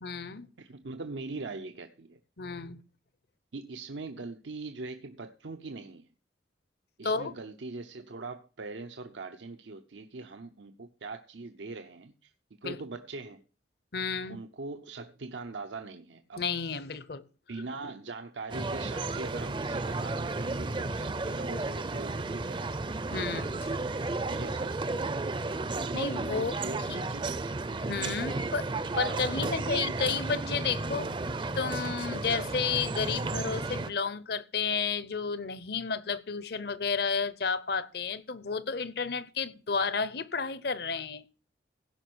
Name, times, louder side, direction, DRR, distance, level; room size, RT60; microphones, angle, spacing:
voice 1, 0.0-0.5 2.4-2.8 7.0-7.3 12.6-12.8 13.9-14.4 16.4-17.2 23.1-23.7 25.9-26.6 27.9-28.7 29.0-41.2, left 5 dB, 60° left, 0.8 m, -32 dB
voice 2, 0.6-2.2 3.5-6.1 7.0-12.3 12.6-13.4 14.3-16.4 17.5-22.7 24.3-25.0 26.3-27.6 28.3-28.6 28.9-29.6, right 3 dB, 90° right, 0.8 m, -41 dB
sound 1, 18.5-33.9, right 3 dB, 25° right, 0.5 m, -33 dB
16.0 x 5.4 x 6.2 m
head